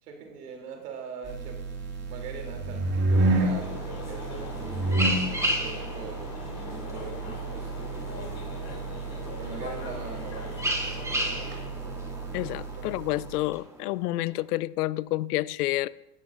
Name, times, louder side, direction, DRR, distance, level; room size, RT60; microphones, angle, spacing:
voice 1, 0.0-6.3 6.7-8.9 9.4-11.6 12.8-12.9, right 5 dB, 85° right, 3.2 m, -42 dB
sound 1, 1.2-13.5, right 2 dB, 35° right, 2.5 m, -31 dB
sound 2, 3.1-14.1, right 1 dB, 5° right, 2.9 m, -35 dB
sound 3, 3.2-11.6, left 4 dB, 35° left, 3.1 m, -43 dB
voice 2, 12.3-15.9, left 17 dB, 80° left, 0.6 m, -29 dB
16.5 x 12.0 x 2.6 m
hypercardioid pair, 95°, 46 cm